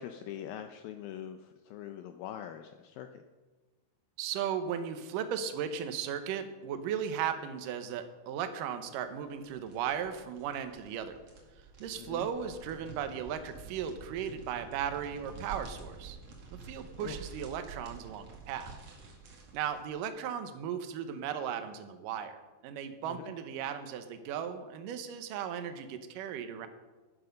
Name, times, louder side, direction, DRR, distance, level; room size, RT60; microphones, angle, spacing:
voice 1, 0.0-3.2 12.0-12.3 16.9-17.2 23.1-23.3, left 10 dB, 85° left, 7 dB, 2.0 m, -43 dB
voice 2, 4.2-11.2 11.8-16.2 16.5-18.8 19.5-26.7, right 8 dB, 75° right, 9 dB, 2.1 m, -36 dB
sound 1, 9.2-19.9, right 5 dB, 45° right, 2.8 m, -49 dB
11.5 x 10.5 x 6.6 m, 1.2 s
omnidirectional pair, 4.9 m